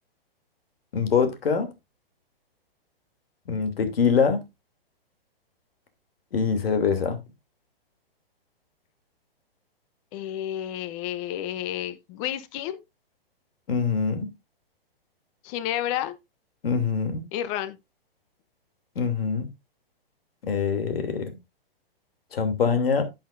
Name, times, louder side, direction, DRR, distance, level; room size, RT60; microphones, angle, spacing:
voice 1, 0.9-1.7 3.5-4.4 6.3-7.2 13.7-14.3 16.6-17.2 18.9-19.5 20.4-21.4 22.3-23.0, left 6 dB, 75° left, 2.9 m, -24 dB
voice 2, 10.1-12.8 15.4-16.1 17.3-17.8, left 12 dB, 35° left, 1.0 m, -30 dB
10.5 x 8.3 x 2.6 m
hypercardioid pair, 135°, 30 cm